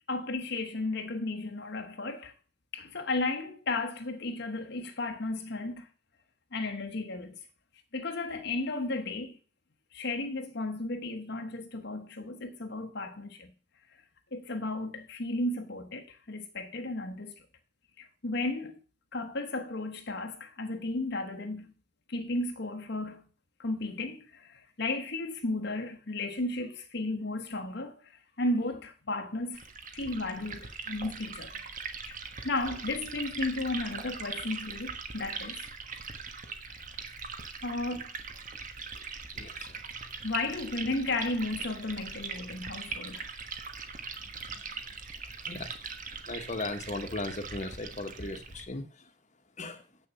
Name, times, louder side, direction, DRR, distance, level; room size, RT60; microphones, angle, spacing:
voice 1, 0.1-2.3 2.7-5.9 6.5-7.4 7.9-9.4 9.9-13.5 13.9-14.0 14.3-17.3 18.0-18.8 19.1-21.7 22.1-23.2 23.6-29.7 29.9-31.6 32.1-35.7 36.7-36.9 37.6-38.1 40.2-43.3, left 2 dB, 55° left, 1.2 m, -34 dB
Liquid, 29.5-48.6, right 5 dB, 40° right, 1.3 m, -41 dB
voice 2, 39.3-39.8 44.5-44.6 45.4-45.9 46.3-49.1 49.6-49.8, left 2 dB, 35° left, 1.3 m, -37 dB
8.2 x 7.0 x 6.9 m
head